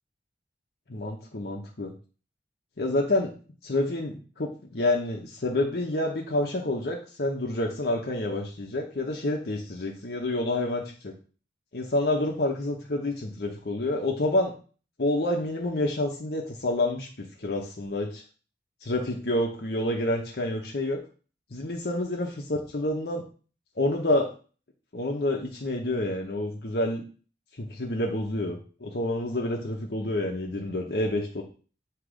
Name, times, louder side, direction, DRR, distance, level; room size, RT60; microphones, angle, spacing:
voice 1, 0.9-1.9 2.8-3.3 3.6-11.1 11.7-14.5 15.0-18.2 18.8-21.0 21.5-23.2 23.8-24.3 24.9-27.0 27.6-31.4, left 1 dB, 60° left, 0 dB, 0.8 m, -28 dB
7.8 x 2.9 x 4.9 m, 0.38 s
head